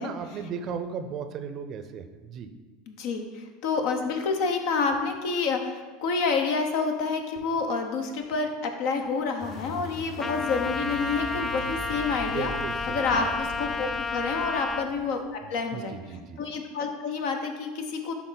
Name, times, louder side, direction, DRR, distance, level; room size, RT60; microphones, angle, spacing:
voice 1, 0.0-2.5 12.3-13.4 15.7-16.4, right 6 dB, 45° right, 9 dB, 0.6 m, -36 dB
voice 2, 2.9-12.5 12.9-15.2 15.5-16.0 16.4-18.1, left 4 dB, 60° left, 5 dB, 0.9 m, -28 dB
sound 1, 9.4-15.5, left 2 dB, 45° left, 1.1 m, -41 dB
Trumpet, 10.2-14.9, left 4 dB, 25° left, 0.5 m, -31 dB
10.5 x 3.7 x 4.0 m, 1.3 s
hypercardioid pair, 80°, 0 cm